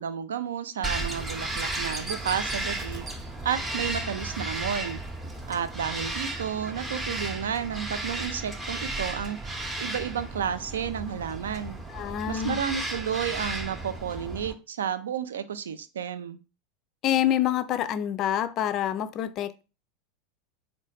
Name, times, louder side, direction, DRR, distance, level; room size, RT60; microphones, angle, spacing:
voice 1, 0.0-3.0 3.4-5.0 5.5-11.8 12.3-16.4, right 8 dB, 70° right, 0.3 m, -32 dB
Bird vocalization bird call bird song, 0.8-14.5, right 2 dB, 15° right, 0.7 m, -34 dB
voice 2, 11.9-12.6 17.0-19.6, left 11 dB, 40° left, 0.3 m, -27 dB
4.0 x 2.2 x 3.9 m
figure-of-eight pair, 80°, 0 cm